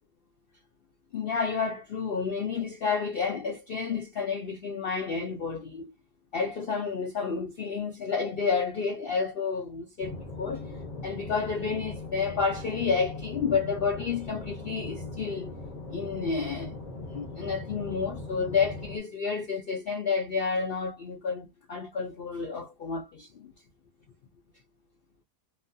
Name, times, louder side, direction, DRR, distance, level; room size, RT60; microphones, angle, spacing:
voice 1, 1.1-5.9 6.3-10.7 11.0-15.5 15.9-16.8 17.1-23.5, left 5 dB, 80° left, 0.5 m, -30 dB
sound 1, 10.0-19.0, left 2 dB, 30° left, 1.2 m, -39 dB
2.9 x 2.2 x 2.6 m
omnidirectional pair, 1.7 m